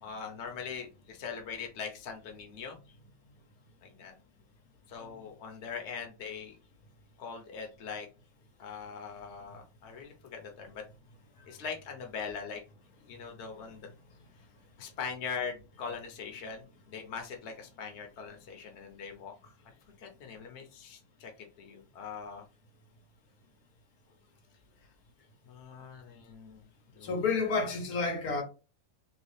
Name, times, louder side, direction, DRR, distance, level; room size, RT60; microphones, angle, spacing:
voice 1, 0.0-2.8 3.8-4.1 4.9-6.6 7.2-8.1 8.6-10.8 11.5-12.6 13.1-13.9 14.8-19.5 20.0-21.3 21.6-22.4 25.4-26.6 26.9-27.2, left 6 dB, 55° left, 1.0 m, -41 dB
voice 2, 27.0-28.4, left 4 dB, 90° left, 1.4 m, -30 dB
3.1 x 3.1 x 3.1 m
omnidirectional pair, 1.5 m